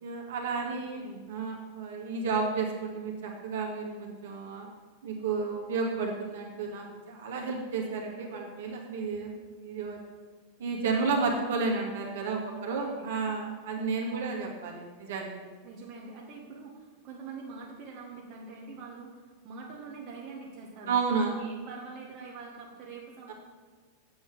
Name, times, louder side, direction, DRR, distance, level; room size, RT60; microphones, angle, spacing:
voice 1, 0.0-1.0 1.3-4.7 5.0-10.0 10.6-15.3 20.9-21.4 23.3-23.4, right 4 dB, 60° right, 0 dB, 2.2 m, -32 dB
voice 2, 0.6-1.2 12.5-13.1 14.1-14.4 15.6-20.9 21.2-23.3, right 4 dB, 35° right, -2 dB, 1.6 m, -44 dB
8.1 x 7.8 x 7.4 m, 1.4 s
figure-of-eight pair, 90°, 0 cm